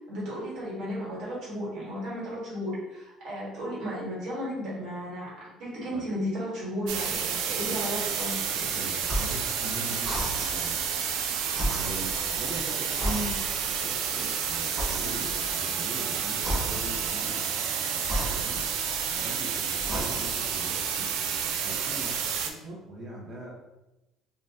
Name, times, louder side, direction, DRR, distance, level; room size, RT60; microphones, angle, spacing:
voice 1, 0.1-5.3 5.6-8.4 13.0-13.3, equal, 60° right, -6 dB, 1.4 m, -34 dB
sound 1, 6.9-22.5, right 7 dB, 80° right, 0.3 m, -30 dB
voice 2, 8.5-10.8 11.7-13.1 13.6-18.6 19.1-21.1 21.6-23.5, right 1 dB, 40° right, -5 dB, 0.6 m, -42 dB
sound 2, 9.0-9.5 10.0-10.8 11.5-12.6 13.0-13.8 14.8-15.5 16.4-17.1 18.0-19.2 19.8-20.5, right 1 dB, 20° right, 1.1 m, -33 dB
2.6 x 2.1 x 3.4 m, 0.99 s
cardioid pair, 140°, 0 cm